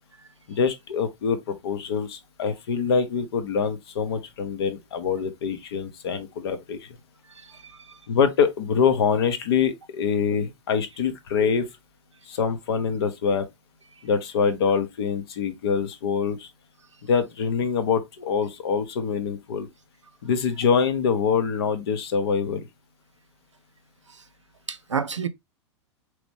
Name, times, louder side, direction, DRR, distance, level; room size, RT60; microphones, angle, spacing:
voice 1, 0.5-6.9 8.1-11.7 12.3-13.5 14.0-16.5 17.1-19.7 20.2-22.7, left 6 dB, 55° left, 1.0 m, -25 dB
voice 2, 7.4-8.0 11.4-11.5 24.7-25.3, right 6 dB, 80° right, 0.6 m, -30 dB
5.0 x 3.1 x 3.1 m
figure-of-eight pair, 95°, 15 cm